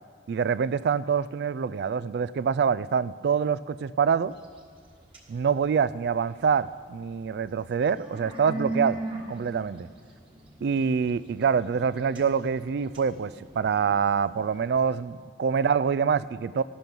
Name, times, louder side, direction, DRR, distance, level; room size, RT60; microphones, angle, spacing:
voice 1, 0.3-4.3 5.3-9.0 9.3-9.9 10.6-16.6, right 6 dB, 60° right, 18 dB, 0.3 m, -25 dB
sound 1, 4.3-6.3 6.8-15.0, right 2 dB, 30° right, 1.6 m, -39 dB
12.0 x 11.5 x 5.4 m, 2.4 s
head